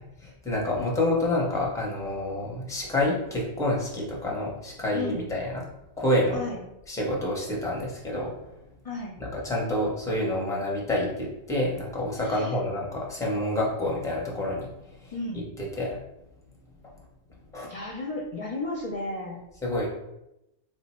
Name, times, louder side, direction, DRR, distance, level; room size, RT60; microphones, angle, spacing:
voice 1, 0.2-5.6 6.0-6.4 6.9-8.3 9.2-15.1 15.6-16.0 17.5-17.7 19.6-19.9, left 1 dB, 5° left, -3 dB, 0.6 m, -28 dB
voice 2, 4.9-5.2 6.3-6.6 8.8-9.1 12.2-12.5 15.1-15.4 17.6-19.4, left 2 dB, 50° left, -3 dB, 0.4 m, -33 dB
3.2 x 2.1 x 4.2 m, 0.89 s
omnidirectional pair, 1.1 m